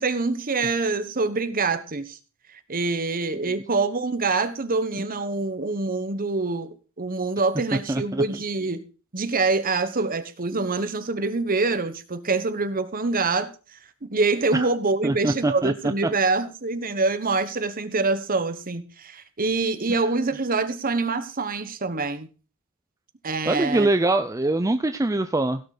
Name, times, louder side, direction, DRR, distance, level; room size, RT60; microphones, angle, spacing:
voice 1, 0.0-2.2 2.7-8.8 9.1-13.5 14.0-22.3 23.2-23.9, right 3 dB, 40° right, 11 dB, 1.2 m, -25 dB
voice 2, 7.9-8.2 14.5-14.7 15.0-15.7 19.9-20.0 23.5-25.6, right 2 dB, 15° right, 9 dB, 0.5 m, -23 dB
16.5 x 6.7 x 5.0 m, 0.34 s
head